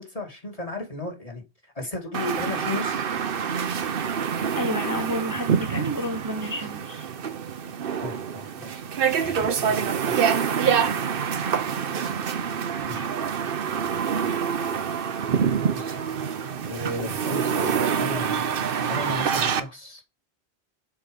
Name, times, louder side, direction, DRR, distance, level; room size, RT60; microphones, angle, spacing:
voice 1, 0.0-1.4 1.7-3.0 8.0-8.8 9.6-10.2 10.6-11.0 11.6-11.7 12.8-13.1 15.7-16.0 16.6-18.5 18.9-20.0, left 1 dB, 35° left, 2 dB, 2.3 m, -35 dB
sound 1, 2.1-19.6, right 7 dB, 60° right, 0.9 m, -26 dB
voice 2, 4.5-7.0 9.2-9.6, equal, 20° right, 3 dB, 1.1 m, -31 dB
6.9 x 4.7 x 5.1 m, 0.24 s
omnidirectional pair, 1.1 m